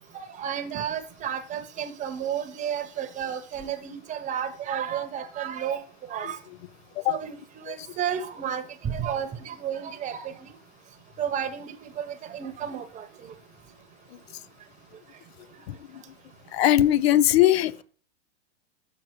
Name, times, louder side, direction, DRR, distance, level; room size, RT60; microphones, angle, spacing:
voice 1, 0.1-5.8 6.1-6.4 7.1-10.3 11.2-13.3, right 8 dB, 20° right, 0.9 m, -32 dB
voice 2, 16.5-17.8, left 13 dB, 65° left, 0.4 m, -20 dB
6.5 x 4.9 x 4.6 m
hypercardioid pair, 125°, 34 cm